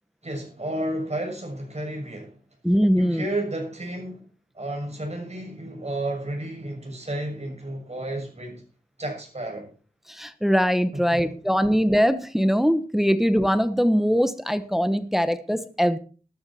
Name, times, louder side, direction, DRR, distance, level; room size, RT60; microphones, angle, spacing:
voice 1, 0.2-2.3 3.0-4.2 4.6-8.6 9.0-9.7 10.9-11.3, right 1 dB, 45° right, 2 dB, 6.9 m, -32 dB
voice 2, 2.6-3.3 10.1-16.0, equal, ahead, 11 dB, 1.2 m, -22 dB
13.5 x 13.0 x 4.4 m, 0.38 s
wide cardioid pair, 75°, 15 cm